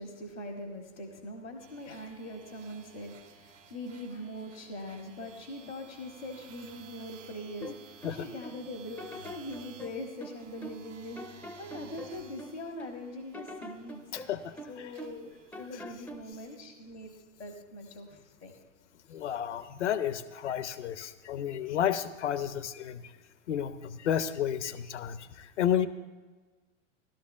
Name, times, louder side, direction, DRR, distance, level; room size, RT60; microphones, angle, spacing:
voice 1, 0.0-14.3 14.7-17.1 17.4-18.6 19.1-19.2, left 1 dB, 85° left, 3 dB, 1.4 m, -42 dB
sound 1, 1.6-14.0 14.4-16.6, right 7 dB, 75° right, 1.3 m, -55 dB
sound 2, 7.6-8.6 9.0-10.9 11.2-13.0 13.3-15.3 15.5-16.3, equal, 5° left, 0.5 m, -45 dB
voice 2, 14.1-14.9 19.1-23.0 23.5-25.9, left 9 dB, 65° left, 13 dB, 0.7 m, -32 dB
19.0 x 12.5 x 2.4 m, 1.3 s
figure-of-eight pair, 95°, 38 cm